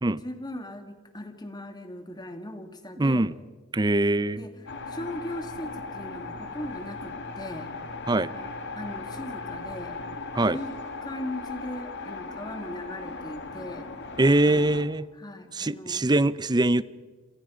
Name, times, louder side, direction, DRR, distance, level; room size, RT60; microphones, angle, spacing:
voice 1, 0.2-3.3 4.4-7.7 8.3-10.0 10.5-10.7 11.0-13.9 14.4-14.7 15.2-16.0, left 1 dB, 20° left, 2.3 m, -39 dB
voice 2, 3.0-3.3 3.7-4.5 8.1-8.3 10.3-10.6 14.2-15.1 15.5-16.8, right 2 dB, 20° right, 0.6 m, -22 dB
sound 1, 4.7-14.8, left 3 dB, 55° left, 2.1 m, -38 dB
27.5 x 27.5 x 5.2 m
head